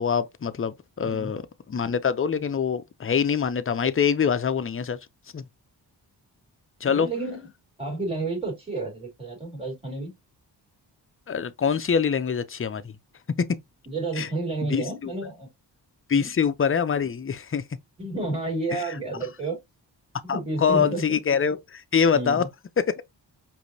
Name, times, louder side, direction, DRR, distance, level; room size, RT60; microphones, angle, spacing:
voice 1, 0.0-1.4 1.7-5.0 5.3-5.4 6.8-7.1 11.3-12.9 13.4-13.5 14.2-14.3 14.7-15.1 16.1-17.6 20.3-22.4 22.8-22.9, left 6 dB, 30° left, 0.6 m, -24 dB
voice 2, 6.8-7.5 7.8-10.1 13.9-15.5 16.1-16.3 18.0-19.6 20.2-21.1 22.1-22.5, right 2 dB, 15° right, 2.9 m, -31 dB
5.0 x 2.7 x 2.7 m
cardioid pair, 60°, 44 cm